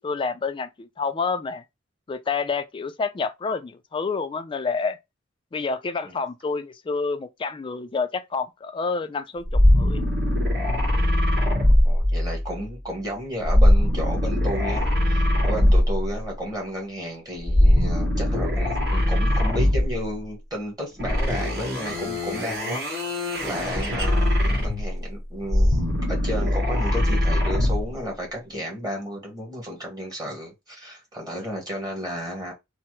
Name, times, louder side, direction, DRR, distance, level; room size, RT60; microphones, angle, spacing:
voice 1, 0.0-1.6 2.1-5.0 5.5-10.0, left 4 dB, 25° left, 0.3 m, -28 dB
sound 1, 9.5-12.5 13.4-16.1 17.4-20.0 21.0-25.0 25.4-27.9, left 1 dB, 60° right, 1.7 m, -21 dB
voice 2, 11.8-23.0 23.4-25.8 26.1-32.5, equal, 20° right, 1.1 m, -33 dB
3.2 x 2.0 x 2.9 m
head